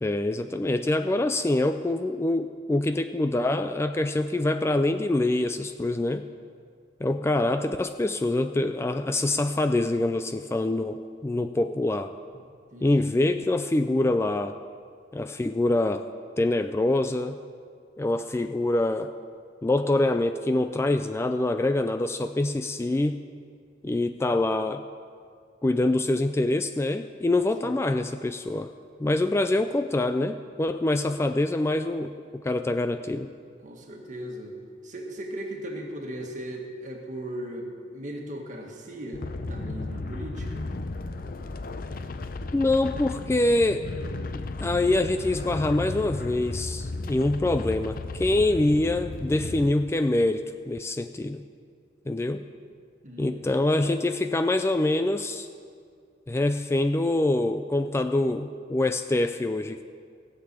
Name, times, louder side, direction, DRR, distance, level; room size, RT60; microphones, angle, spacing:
voice 1, 0.0-6.3 7.0-12.1 12.8-14.5 15.1-16.1 16.4-17.4 18.0-19.1 19.6-23.2 23.8-24.8 25.6-28.7 29.0-33.3 42.5-43.8 44.6-51.4 52.1-52.4 53.2-55.5 56.3-59.8, left 2 dB, 15° left, 9 dB, 0.3 m, -25 dB
voice 2, 12.7-13.1 27.6-27.7 33.6-34.5 34.8-40.7 53.0-53.6, right 1 dB, 45° right, 1 dB, 1.8 m, -38 dB
sound 1, 39.1-49.7, left 2 dB, 50° left, 0.6 m, -34 dB
16.5 x 6.8 x 8.3 m, 2.2 s
head